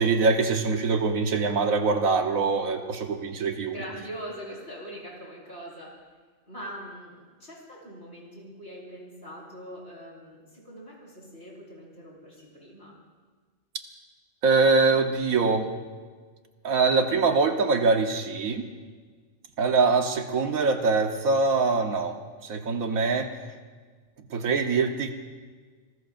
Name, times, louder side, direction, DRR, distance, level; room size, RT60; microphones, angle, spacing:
voice 1, 0.0-3.8 14.4-15.7 16.6-18.6 19.6-22.2 22.4-23.3 24.3-25.1, right 4 dB, 85° right, 5 dB, 1.6 m, -23 dB
voice 2, 3.7-6.0 6.5-12.9, equal, 50° left, -4 dB, 5.6 m, -42 dB
26.0 x 20.0 x 2.6 m, 1.5 s
omnidirectional pair, 1.4 m